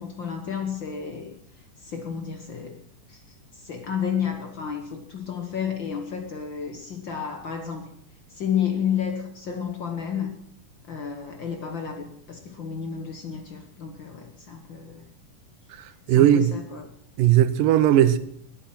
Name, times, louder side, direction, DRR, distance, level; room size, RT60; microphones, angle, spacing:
voice 1, 0.0-1.4 1.8-2.8 3.1-7.9 8.3-10.3 10.8-15.1 16.1-16.8, left 8 dB, 60° left, 1.3 m, -31 dB
voice 2, 15.7-16.5 17.2-18.2, right 11 dB, 85° right, 2.5 m, -18 dB
20.0 x 8.7 x 5.9 m
omnidirectional pair, 3.7 m